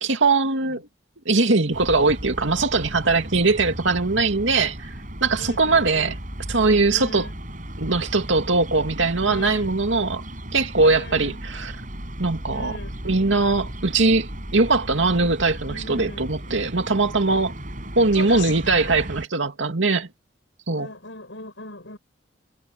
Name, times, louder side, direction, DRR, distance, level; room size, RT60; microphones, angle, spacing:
voice 1, 0.0-0.8 1.3-4.9 5.2-6.1 6.5-7.3 7.8-10.2 10.5-11.7 12.2-12.8 13.0-17.5 18.0-20.1 20.7-20.9, right 3 dB, 85° right, 2.4 m, -21 dB
sound 1, 1.7-19.3, right 1 dB, 45° right, 7.5 m, -35 dB
voice 2, 5.4-6.2 6.9-7.4 9.2-9.7 10.8-11.4 12.5-12.9 15.6-16.6 18.0-18.9 20.7-22.0, left 2 dB, 75° left, 7.3 m, -39 dB
head